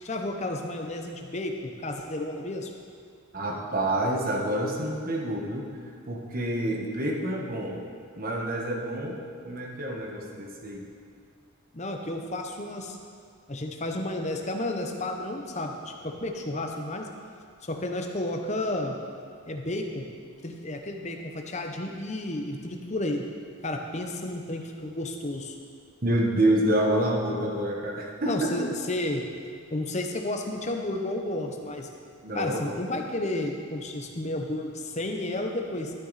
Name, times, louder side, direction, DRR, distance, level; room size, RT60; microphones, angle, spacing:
voice 1, 0.0-2.7 11.7-13.0 13.5-17.1 17.6-19.0 19.5-20.1 20.4-23.3 23.6-25.6 28.2-29.2 29.7-31.9 32.3-35.9, left 1 dB, 30° left, 3 dB, 0.9 m, -32 dB
voice 2, 3.3-5.7 6.1-7.8 8.2-9.2 9.4-10.9 26.0-28.5 32.2-32.9, right 1 dB, 40° right, -1 dB, 1.4 m, -27 dB
12.5 x 9.3 x 4.2 m, 2.2 s
head